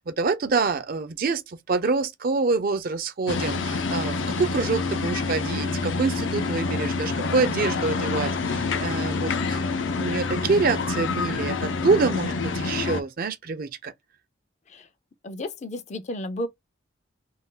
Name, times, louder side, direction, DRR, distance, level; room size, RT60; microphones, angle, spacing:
voice 1, 0.0-9.6 10.0-13.9, right 4 dB, 50° right, 0.4 m, -26 dB
sound 1, 3.3-13.0, left 4 dB, 90° left, 0.6 m, -27 dB
voice 2, 15.2-16.5, left 1 dB, 40° left, 0.4 m, -33 dB
2.4 x 2.3 x 3.7 m
head